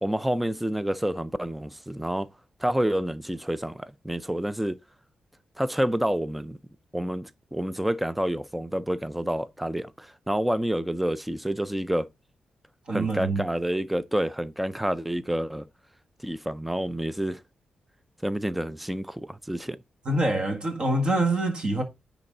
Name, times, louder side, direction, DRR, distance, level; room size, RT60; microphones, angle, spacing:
voice 1, 0.0-2.3 2.6-4.8 5.6-6.6 6.9-12.1 12.9-15.7 16.2-17.4 18.2-19.8, right 1 dB, 5° right, 0.4 m, -28 dB
voice 2, 12.9-13.4 20.1-21.8, right 2 dB, 40° right, 1.8 m, -25 dB
9.8 x 4.0 x 3.8 m
wide cardioid pair, 135°, 2 cm